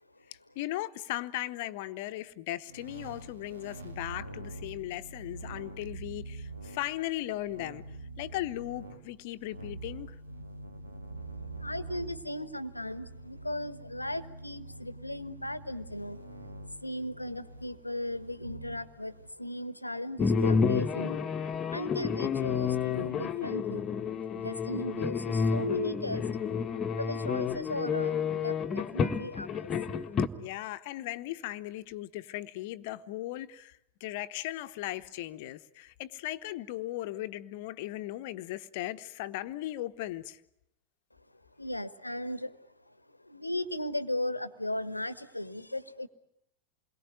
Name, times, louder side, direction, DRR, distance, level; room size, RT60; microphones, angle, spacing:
voice 1, 0.3-7.8 8.2-10.1 30.4-40.4, left 15 dB, 50° left, 1.0 m, -37 dB
sound 1, 2.7-19.3, right 2 dB, 75° right, 2.3 m, -45 dB
voice 2, 11.4-16.2 16.7-21.2 21.7-23.9 24.3-26.4 27.0-29.7 41.6-42.6 42.9-43.0 43.2-46.1, left 1 dB, 85° left, 1.1 m, -37 dB
sound 2, 20.2-30.3, left 6 dB, 25° left, 1.3 m, -30 dB
28.5 x 22.0 x 9.1 m
figure-of-eight pair, 90°, 0 cm